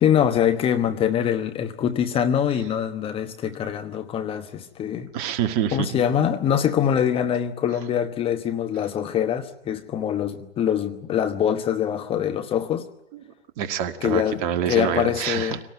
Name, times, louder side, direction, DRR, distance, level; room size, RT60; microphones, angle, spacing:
voice 1, 0.0-5.1 5.7-12.9 14.0-15.6, left 9 dB, 15° left, 7 dB, 1.2 m, -24 dB
voice 2, 5.1-5.8 13.1-13.2 13.6-15.6, right 9 dB, 35° right, 8 dB, 1.8 m, -26 dB
26.0 x 18.0 x 9.3 m, 0.82 s
hypercardioid pair, 130°, 33 cm